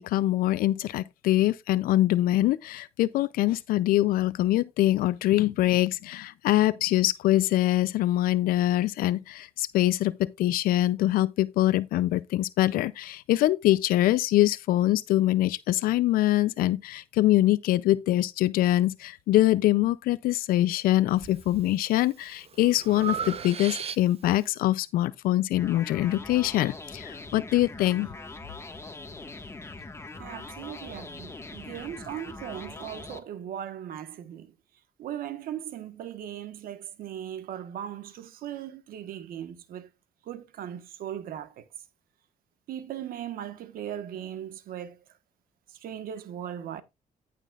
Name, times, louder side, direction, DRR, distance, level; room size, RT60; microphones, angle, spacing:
voice 1, 0.0-28.1, left 15 dB, 85° left, 0.4 m, -24 dB
Breathing, 21.2-21.7 22.1-24.4, right 7 dB, 45° right, 0.8 m, -36 dB
sound 1, 25.6-33.2, left 3 dB, 20° left, 1.4 m, -42 dB
voice 2, 30.2-34.6 35.0-39.9 40.2-41.6 42.7-45.0 45.7-46.8, right 10 dB, 80° right, 1.2 m, -38 dB
15.0 x 5.9 x 2.3 m
cardioid pair, 90°, 15 cm